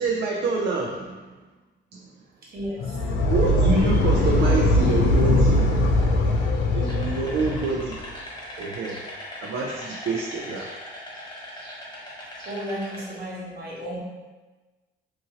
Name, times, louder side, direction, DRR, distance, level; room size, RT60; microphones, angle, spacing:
voice 1, 0.0-1.4 1.9-2.1 3.3-5.7 6.7-8.0 8.6-9.0 9.4-10.7, right 3 dB, 70° right, -1 dB, 0.4 m, -27 dB
voice 2, 2.5-3.0 12.4-14.0, equal, 50° right, -5 dB, 1.1 m, -33 dB
sound 1, 2.8-8.0, left 1 dB, 80° left, 0.4 m, -21 dB
sound 2, 6.8-13.1, left 1 dB, 20° left, 1.0 m, -39 dB
2.7 x 2.6 x 2.7 m, 1.2 s
cardioid pair, 90°, 20 cm